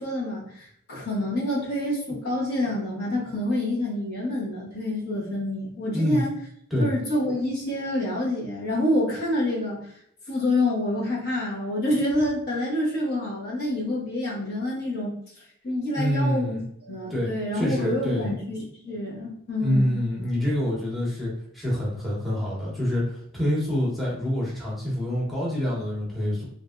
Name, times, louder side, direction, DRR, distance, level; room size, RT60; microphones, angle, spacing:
voice 1, 0.0-6.3 6.8-9.8 10.3-15.1 15.6-20.0, left 1 dB, 50° left, -5 dB, 1.0 m, -27 dB
voice 2, 16.0-16.6 17.1-18.3 19.6-26.4, equal, ahead, -7 dB, 0.9 m, -26 dB
3.3 x 2.5 x 2.4 m, 0.68 s
head